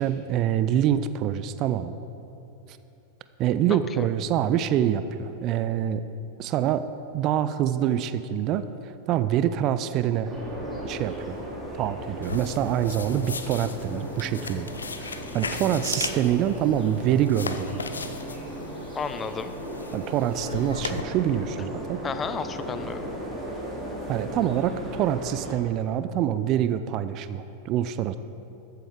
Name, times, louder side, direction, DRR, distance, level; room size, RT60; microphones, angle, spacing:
voice 1, 0.0-2.0 3.4-6.0 6.4-6.9 7.1-8.7 9.1-10.3 10.8-11.4 11.8-14.7 15.0-17.8 19.9-22.0 24.1-28.2, right 10 dB, 35° right, 12 dB, 0.4 m, -25 dB
voice 2, 3.7-4.1 18.9-19.5 22.0-23.0, left 6 dB, 20° left, 11 dB, 0.5 m, -32 dB
sound 1, 10.2-25.5, right 1 dB, 5° right, 3.1 m, -36 dB
sound 2, 12.2-21.0, left 4 dB, 75° left, 0.6 m, -37 dB
14.0 x 7.8 x 5.1 m, 3.0 s
figure-of-eight pair, 90°, 0 cm